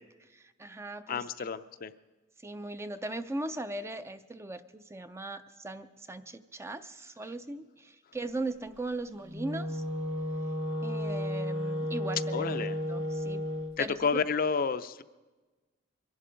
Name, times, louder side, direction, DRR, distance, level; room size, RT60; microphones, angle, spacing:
voice 1, 0.3-1.5 2.4-9.8 10.8-12.5 12.9-13.5 13.8-13.9, right 2 dB, 15° right, 10 dB, 0.4 m, -39 dB
voice 2, 1.1-1.9 12.3-12.7 13.8-15.0, left 5 dB, 45° left, 11 dB, 0.5 m, -30 dB
Wind instrument woodwind instrument, 9.2-13.8, equal, 70° right, 1.5 m, -33 dB
24.0 x 11.5 x 5.1 m, 1.2 s
head